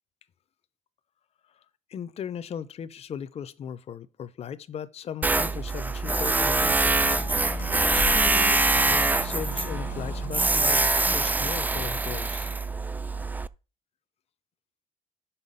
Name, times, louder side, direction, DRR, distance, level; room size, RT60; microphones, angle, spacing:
voice 1, 1.9-12.5, left 8 dB, 50° left, 0.6 m, -38 dB
Tools, 5.2-13.5, right 3 dB, 10° right, 0.3 m, -24 dB
sound 1, 6.0-10.9, left 7 dB, 85° left, 1.0 m, -38 dB
5.7 x 5.6 x 5.4 m
cardioid pair, 90°, 14 cm